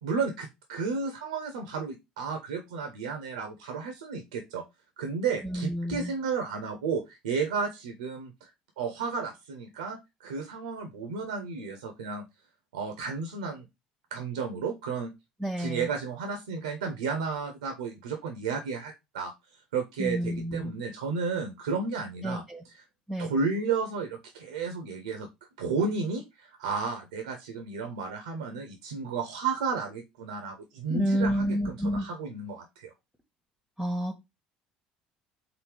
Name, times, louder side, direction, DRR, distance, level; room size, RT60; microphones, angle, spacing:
voice 1, 0.0-4.6 5.0-8.5 8.8-12.2 12.7-13.7 14.1-15.1 15.6-19.3 19.7-22.4 23.2-25.3 25.6-32.9, right 5 dB, 80° right, 5 dB, 0.8 m, -32 dB
voice 2, 5.4-6.1 15.4-15.9 20.0-20.7 22.2-22.6 23.1-23.3 30.9-32.1 33.8-34.2, equal, 5° right, 2 dB, 1.0 m, -29 dB
4.0 x 2.6 x 4.8 m, 0.22 s
hypercardioid pair, 60°, 4 cm